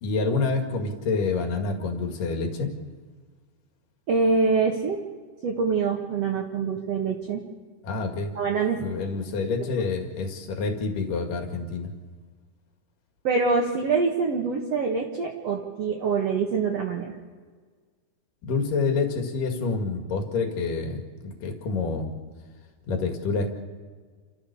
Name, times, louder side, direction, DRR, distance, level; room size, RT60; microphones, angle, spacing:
voice 1, 0.0-2.7 7.8-8.3 8.8-11.9 18.4-22.1 22.9-23.5, left 4 dB, 65° left, 4 dB, 3.6 m, -27 dB
voice 2, 4.1-5.0 5.4-7.4 8.4-8.8 13.2-17.1, right 4 dB, 55° right, 0 dB, 2.3 m, -25 dB
29.0 x 14.0 x 7.0 m, 1.5 s
omnidirectional pair, 4.2 m